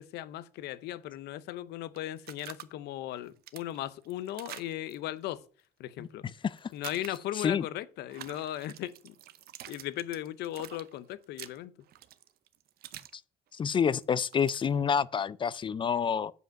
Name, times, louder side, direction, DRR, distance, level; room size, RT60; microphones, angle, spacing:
voice 1, 0.0-5.4 5.8-6.3 6.7-9.2 9.6-11.7, left 13 dB, 80° left, 0.7 m, -37 dB
sound 1, 2.0-2.6 3.1-5.0 6.6-7.4 8.1-13.1 13.5-14.7, right 12 dB, 65° right, 0.7 m, -47 dB
voice 2, 13.6-16.3, left 7 dB, 30° left, 0.3 m, -28 dB
8.0 x 5.1 x 6.3 m
cardioid pair, 110°, 17 cm